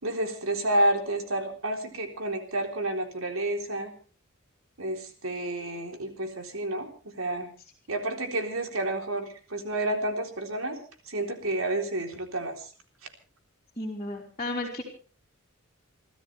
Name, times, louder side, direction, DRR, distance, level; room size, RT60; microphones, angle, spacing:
voice 1, 0.0-3.9 4.8-7.5 7.9-10.8 11.0-12.7, right 1 dB, 75° right, 4 dB, 3.8 m, -30 dB
voice 2, 13.8-14.8, left 2 dB, 30° left, -3 dB, 3.1 m, -33 dB
29.5 x 13.5 x 3.4 m, 0.38 s
head